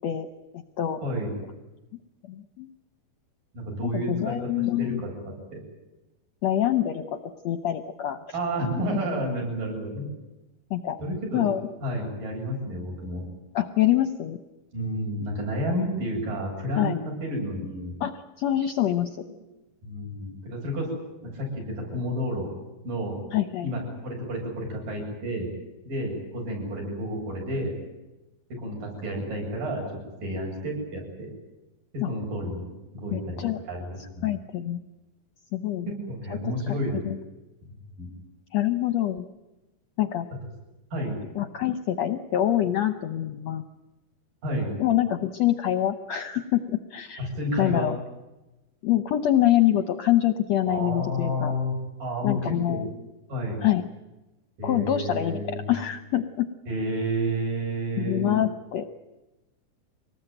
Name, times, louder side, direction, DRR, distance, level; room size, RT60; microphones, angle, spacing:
voice 1, 2.3-2.7 3.8-5.0 6.4-7.0 7.4-8.2 10.7-11.0 11.3-11.6 13.5-14.4 16.7-17.0 18.0-19.2 23.3-23.7 32.0-32.1 33.1-33.6 34.2-34.8 35.5-35.8 36.3-36.5 37.0-37.2 38.5-39.2 40.0-40.2 41.3-43.6 44.8-47.3 47.6-48.0 48.8-51.5 52.2-52.9 53.6-53.8 54.6-56.5 58.0-58.9, left 12 dB, 70° left, 8 dB, 1.6 m, -25 dB
voice 2, 3.5-5.6 8.3-10.1 11.0-11.5 11.8-13.2 14.7-17.9 19.3-19.5 19.8-20.9 21.3-22.5 22.8-23.2 23.6-25.5 25.8-27.7 28.6-29.8 30.2-31.3 31.9-32.7 32.9-33.4 33.7-34.3 35.9-37.2 38.0-38.1 40.9-41.2 44.4-44.7 47.2-47.9 50.6-52.8 53.3-53.6 54.6-55.7 56.7-58.3, equal, 65° right, 0 dB, 9.9 m, -30 dB
25.0 x 19.5 x 9.1 m, 1.0 s
omnidirectional pair, 4.2 m